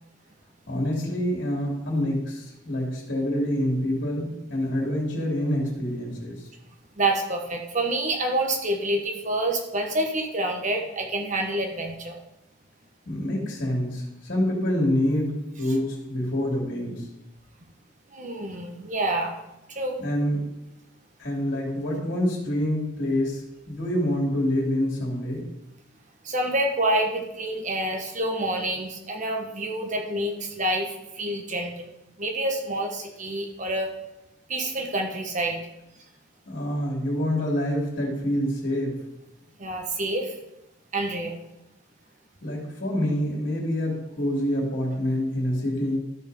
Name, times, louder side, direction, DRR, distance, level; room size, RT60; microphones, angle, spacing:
voice 1, 0.7-6.4 13.0-17.0 20.0-20.4 21.2-25.4 36.5-38.9 42.4-46.0, left 1 dB, 50° left, -3 dB, 2.9 m, -26 dB
voice 2, 7.0-12.2 18.1-19.3 19.7-20.0 26.2-33.9 34.5-35.6 39.6-40.3 40.9-41.4, right 1 dB, 35° right, 3 dB, 1.3 m, -27 dB
13.0 x 4.6 x 5.4 m, 0.91 s
head